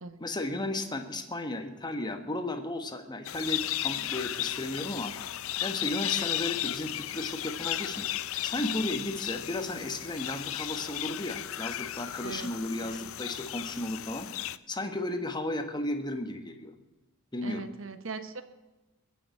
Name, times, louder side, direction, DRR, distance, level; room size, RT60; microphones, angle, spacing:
voice 1, 0.2-5.1 5.6-8.1 8.4-16.7 17.3-17.6, left 1 dB, 20° left, 6 dB, 1.2 m, -34 dB
sound 1, 3.2-14.6, left 13 dB, 65° left, 0.5 m, -35 dB
voice 2, 12.2-13.0 17.4-18.4, right 4 dB, 60° right, 9 dB, 1.1 m, -41 dB
21.5 x 7.1 x 8.2 m, 1.1 s
head